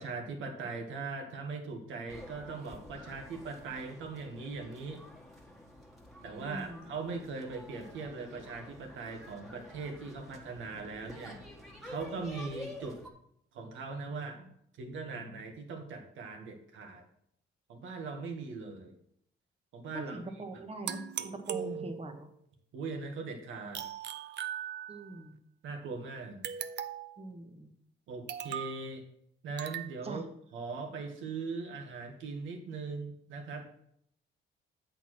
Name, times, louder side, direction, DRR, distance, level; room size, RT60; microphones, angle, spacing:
voice 1, 0.0-5.0 6.2-11.4 11.8-13.0 13.5-14.5 14.8-17.0 17.7-18.9 19.7-20.2 21.5-21.9 22.7-23.8 25.6-26.4 28.1-29.0 29.4-30.3 30.5-33.6, right 4 dB, 80° right, 4 dB, 1.6 m, -40 dB
sound 1, 2.1-13.1, left 1 dB, ahead, 1.7 m, -50 dB
voice 2, 6.4-6.9 19.9-22.3 24.9-25.4 27.2-27.7 30.0-30.2, right 2 dB, 30° right, 5 dB, 1.3 m, -42 dB
sound 2, 20.9-22.3 23.7-25.2 26.4-27.2 28.3-28.8 29.6-29.9, right 9 dB, 60° right, 0.6 m, -39 dB
8.1 x 4.4 x 6.1 m, 0.70 s
cardioid pair, 90°, 20 cm